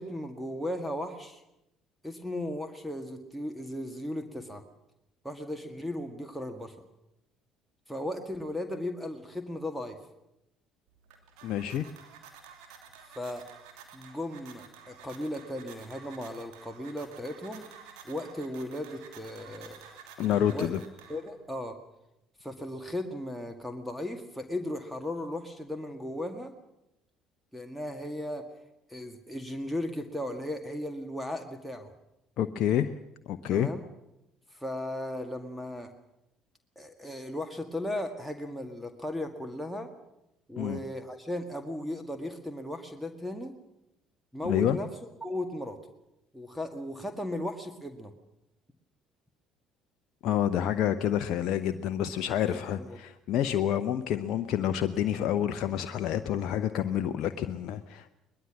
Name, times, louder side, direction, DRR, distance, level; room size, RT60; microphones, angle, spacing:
voice 1, 0.0-1.4 2.0-4.6 5.2-6.7 7.9-10.0 13.1-13.4 13.9-17.6 18.0-19.8 20.5-20.7 21.1-21.8 22.4-26.5 27.5-28.4 28.9-31.9 33.5-33.8 34.5-35.9 36.8-39.9 40.5-43.5 44.3-44.9 45.2-45.8 46.3-48.1 52.4-53.0, left 1 dB, ahead, 7 dB, 1.9 m, -36 dB
sound 1, 10.9-21.5, right 7 dB, 65° right, 2.8 m, -51 dB
voice 2, 11.4-11.9 20.2-20.8 32.4-32.9 33.3-33.7 40.6-40.8 44.4-44.8 50.2-58.1, left 10 dB, 55° left, 9 dB, 0.7 m, -28 dB
22.0 x 20.5 x 6.4 m, 0.87 s
figure-of-eight pair, 55°, 0 cm